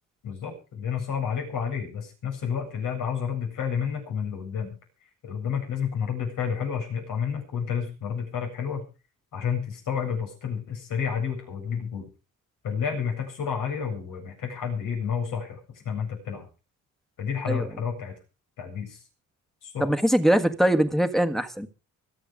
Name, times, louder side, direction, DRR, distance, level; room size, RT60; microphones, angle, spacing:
voice 1, 0.2-4.7 5.2-8.9 9.3-12.1 12.6-15.6 15.8-16.5 17.2-18.1 18.6-19.0 19.6-19.9, left 7 dB, 80° left, 7.8 m, -30 dB
voice 2, 19.8-21.7, right 1 dB, ahead, 1.7 m, -22 dB
24.5 x 8.2 x 5.1 m
cardioid pair, 115°, 31 cm